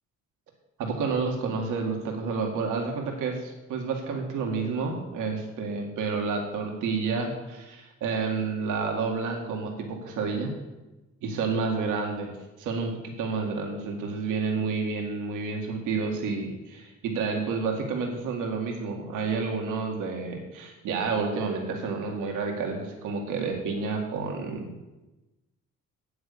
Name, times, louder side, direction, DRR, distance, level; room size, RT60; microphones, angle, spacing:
voice 1, 0.8-10.5 11.2-12.3 12.6-24.7, right 4 dB, 90° right, 2 dB, 2.1 m, -30 dB
9.5 x 8.4 x 8.6 m, 1.1 s
cardioid pair, 90°, 30 cm